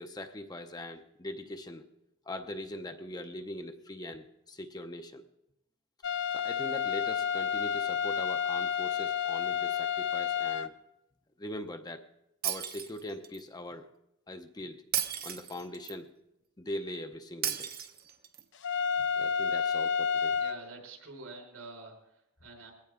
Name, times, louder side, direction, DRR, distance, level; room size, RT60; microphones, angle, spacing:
voice 1, 0.0-1.8 2.3-5.2 6.3-10.7 11.4-12.0 12.4-13.9 14.3-14.8 15.2-16.1 16.6-17.7 19.0-20.4, left 1 dB, 20° left, 6 dB, 0.7 m, -41 dB
sound 1, 6.0-10.7 18.6-20.6, left 7 dB, 60° left, 0.6 m, -30 dB
Shatter, 12.4-13.4 14.9-15.9 17.4-18.4, right 10 dB, 45° right, 1.0 m, -34 dB
voice 2, 20.3-22.7, right 3 dB, 75° right, 1 dB, 5.1 m, -48 dB
21.0 x 17.0 x 3.7 m, 0.86 s
head